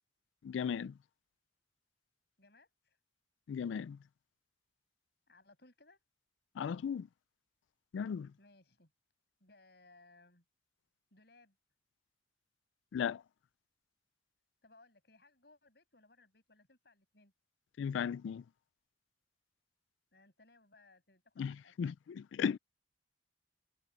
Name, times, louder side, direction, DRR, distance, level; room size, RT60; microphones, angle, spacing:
voice 1, 0.4-0.9 3.5-4.0 6.6-7.1 7.9-8.3 12.9-13.2 17.8-18.4 21.4-21.9 22.3-22.6, left 7 dB, 85° left, 0.3 m, -36 dB
voice 2, 2.4-3.0 5.3-6.0 8.4-8.9 9.4-10.4 11.1-11.5 14.6-17.3 20.1-21.9, left 2 dB, 60° left, 8.0 m, -64 dB
head